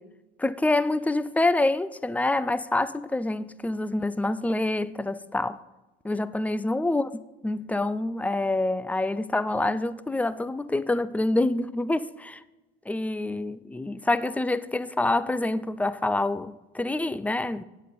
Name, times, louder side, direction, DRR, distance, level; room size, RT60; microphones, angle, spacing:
voice 1, 0.4-5.6 6.0-7.1 7.4-12.4 12.9-17.6, left 2 dB, 5° left, 0.4 m, -26 dB
9.4 x 8.2 x 4.3 m
hypercardioid pair, 75°, 29 cm